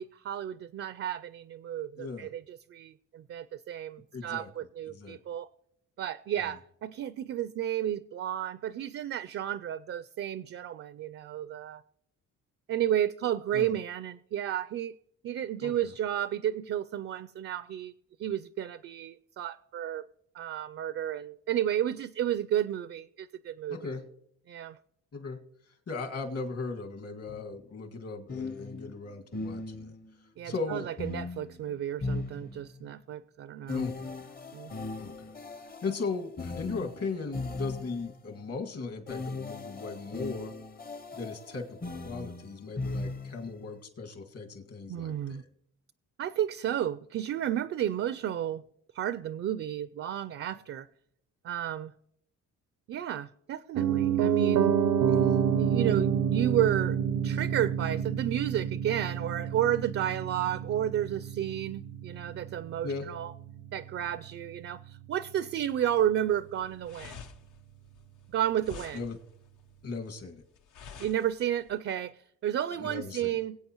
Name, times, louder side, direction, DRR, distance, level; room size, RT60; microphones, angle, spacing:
voice 1, 0.0-5.5 6.0-11.8 12.7-15.0 15.2-17.9 18.2-20.1 20.3-23.8 24.5-24.8 30.4-33.9 34.5-34.7 44.9-45.4 46.2-48.6 48.9-50.9 51.4-51.9 52.9-54.7 55.6-57.0 57.2-63.3 63.7-67.2 68.3-69.0 71.0-72.1 72.4-73.6, right 11 dB, 50° right, 0.4 m, -32 dB
voice 2, 1.9-2.3 4.1-4.5 4.9-5.2 13.5-13.7 15.6-15.9 23.7-24.0 25.1-25.4 25.7-29.9 30.4-30.9 33.7-34.3 35.0-35.4 35.6-40.5 41.1-45.5 55.0-55.4 62.8-63.1 68.9-69.2 69.8-70.4 72.8-73.4, left 4 dB, 50° left, 1.9 m, -38 dB
sound 1, 27.3-27.4 28.3-30.1 31.0-32.9 33.7-38.2 39.1-43.6, left 3 dB, 30° left, 0.8 m, -38 dB
Piano, 53.8-63.8 64.1-64.2, right 8 dB, 90° right, 0.6 m, -28 dB
sound 2, 66.3-71.8, left 6 dB, 75° left, 0.9 m, -49 dB
23.0 x 8.2 x 3.0 m
cardioid pair, 90°, 30 cm